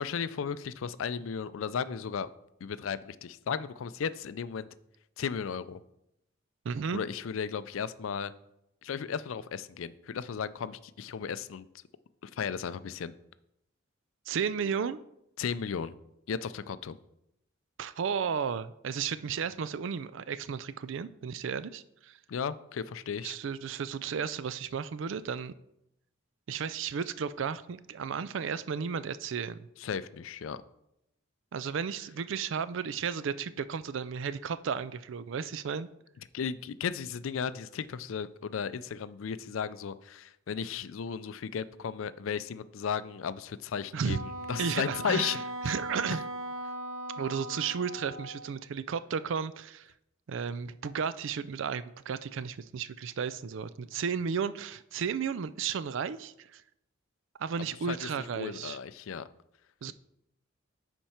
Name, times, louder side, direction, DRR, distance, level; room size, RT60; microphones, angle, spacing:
voice 1, 0.0-2.3 2.6-4.7 5.2-5.8 6.9-8.3 8.8-11.7 12.2-13.1 15.4-15.9 16.3-17.0 22.3-23.4 29.8-30.6 36.3-45.8 57.6-59.3, left 7 dB, 80° left, 0.4 m, -35 dB
voice 2, 6.6-7.0 14.3-15.0 17.8-22.2 23.2-25.5 26.5-29.7 31.5-35.9 43.9-44.2 44.6-45.4 45.7-46.2 47.2-49.9 50.3-56.6 57.4-58.8 59.8-59.9, right 6 dB, 65° right, 0.4 m, -33 dB
Wind instrument woodwind instrument, 44.1-48.5, right 1 dB, 90° right, 0.8 m, -39 dB
10.0 x 4.5 x 4.3 m
head